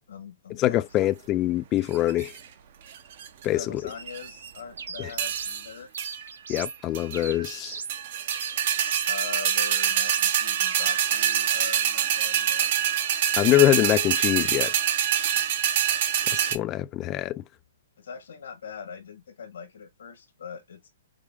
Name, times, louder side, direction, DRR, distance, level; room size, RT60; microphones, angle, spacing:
voice 1, 0.1-0.9 3.5-5.9 9.1-12.7 18.0-20.9, left 6 dB, 80° left, 1.5 m, -41 dB
voice 2, 0.6-2.3 3.4-3.6 5.0-5.1 6.5-7.8 13.3-14.7 16.3-17.4, left 14 dB, 25° left, 0.3 m, -24 dB
sound 1, 1.9-2.4 2.9-3.4 3.9-4.6 5.2-5.7 6.0-6.1 6.6-6.7 6.9-7.6 7.9-16.6, right 9 dB, 50° right, 0.7 m, -25 dB
sound 2, 4.8-5.6 5.9-6.8 7.1-8.0 8.3-9.1 9.5-10.3 10.7-11.5, right 5 dB, 90° right, 0.9 m, -38 dB
4.9 x 2.0 x 3.5 m
hypercardioid pair, 150°, 0 cm